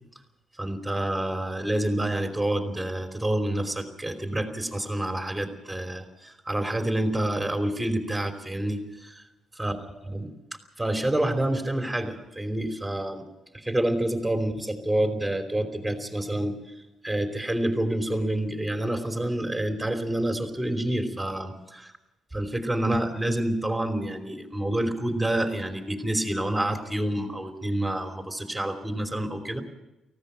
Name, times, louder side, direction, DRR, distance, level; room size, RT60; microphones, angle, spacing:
voice 1, 0.6-9.2 9.6-9.8 10.1-10.2 10.8-13.2 13.5-16.6 17.0-21.8 22.3-29.6, right 1 dB, 5° right, 6 dB, 3.0 m, -28 dB
19.0 x 15.5 x 9.0 m, 0.99 s
cardioid pair, 90°, 0 cm